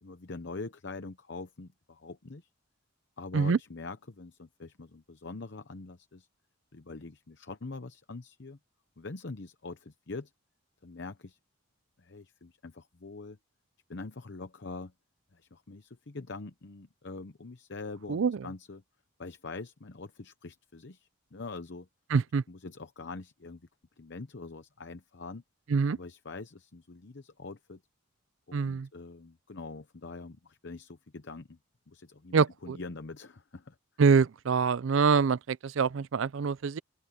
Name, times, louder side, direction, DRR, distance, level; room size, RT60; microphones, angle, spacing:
voice 1, 0.0-2.5 3.2-6.3 6.7-8.6 9.0-10.3 10.8-11.4 12.0-13.4 13.9-14.9 15.3-18.8 19.2-21.9 22.5-23.7 24.0-25.4 25.9-27.8 28.5-31.6 31.9-33.8, left 3 dB, 55° left, 0.8 m, -44 dB
voice 2, 18.1-18.5 22.1-22.4 25.7-26.0 28.5-28.9 32.3-32.8 34.0-36.8, right 5 dB, 65° right, 0.4 m, -25 dB
open air
head